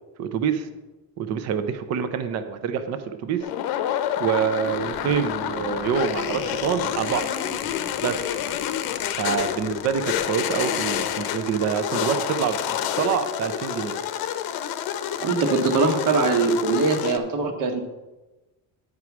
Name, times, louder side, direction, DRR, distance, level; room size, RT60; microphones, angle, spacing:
voice 1, 0.2-0.7 1.2-3.4 4.2-7.3 8.0-8.2 9.2-13.9, right 7 dB, 45° right, 9 dB, 0.6 m, -26 dB
sound 1, 3.4-17.2, left 10 dB, 75° left, 0.8 m, -29 dB
sound 2, 4.6-12.0, left 7 dB, 35° left, 0.6 m, -38 dB
voice 2, 15.2-17.8, right 4 dB, 60° right, 6 dB, 1.3 m, -22 dB
9.6 x 4.8 x 6.0 m, 1.1 s
cardioid pair, 170°, 37 cm